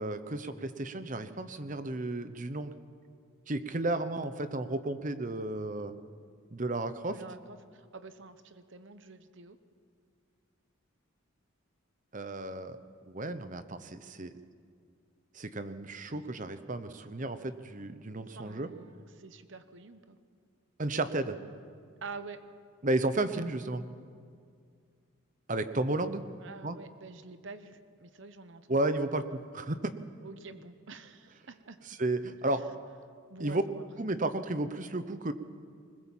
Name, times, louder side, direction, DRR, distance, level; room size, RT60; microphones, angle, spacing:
voice 1, 0.0-2.7 3.5-6.0 6.5-7.2 12.1-12.8 13.1-14.4 15.3-18.7 20.8-21.4 22.8-23.9 25.5-26.2 26.6-26.8 28.7-29.9 31.8-32.7 33.4-33.6 34.0-35.3, right 2 dB, 35° right, 11 dB, 0.9 m, -33 dB
voice 2, 7.1-9.6 18.3-20.2 22.0-22.4 26.4-28.8 30.2-31.8 33.3-33.9, right 4 dB, 60° right, 10 dB, 1.0 m, -47 dB
21.0 x 20.5 x 7.4 m, 2.1 s
head